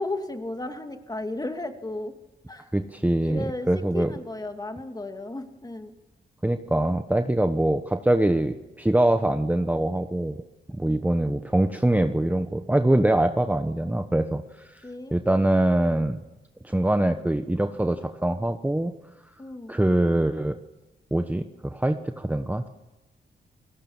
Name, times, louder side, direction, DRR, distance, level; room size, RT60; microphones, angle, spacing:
voice 1, 0.0-2.1 2.5-2.7 3.2-3.7 3.9-5.9 14.8-15.2 19.4-19.7, left 2 dB, 20° left, 5 dB, 2.7 m, -34 dB
voice 2, 2.7-4.1 6.4-10.4 10.8-16.2 16.6-18.9 19.7-20.6 21.1-22.7, right 1 dB, 10° right, 7 dB, 1.2 m, -24 dB
29.5 x 17.5 x 7.3 m, 1.0 s
cardioid pair, 75°, 19 cm